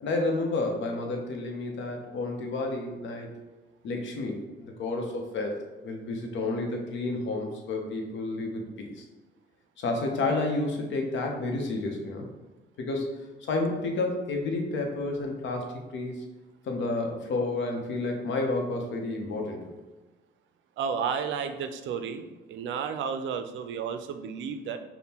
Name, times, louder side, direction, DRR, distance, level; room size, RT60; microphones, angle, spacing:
voice 1, 0.0-3.3 3.8-9.0 9.8-12.3 12.8-13.1 13.4-16.2 16.7-19.7, left 2 dB, 70° left, 2 dB, 0.8 m, -30 dB
voice 2, 20.8-24.8, right 6 dB, 75° right, 9 dB, 0.4 m, -32 dB
5.2 x 2.2 x 2.9 m, 1.2 s
cardioid pair, 90°, 20 cm